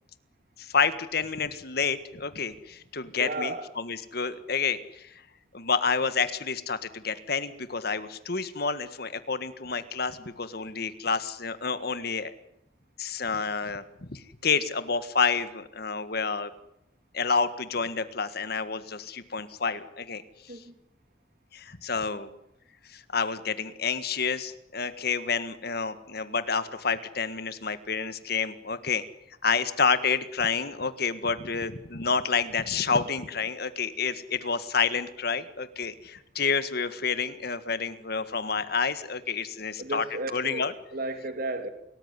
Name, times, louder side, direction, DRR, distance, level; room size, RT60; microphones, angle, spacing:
voice 1, 0.6-3.5 3.8-5.1 5.5-12.3 13.0-13.8 14.1-16.5 17.1-20.2 21.5-22.3 22.9-29.0 29.4-40.0 40.3-40.7, left 5 dB, 60° left, 1.7 m, -29 dB
voice 2, 3.1-3.7 20.5-20.7 39.8-41.7, right 2 dB, 50° right, 2.9 m, -34 dB
29.5 x 19.5 x 9.8 m
head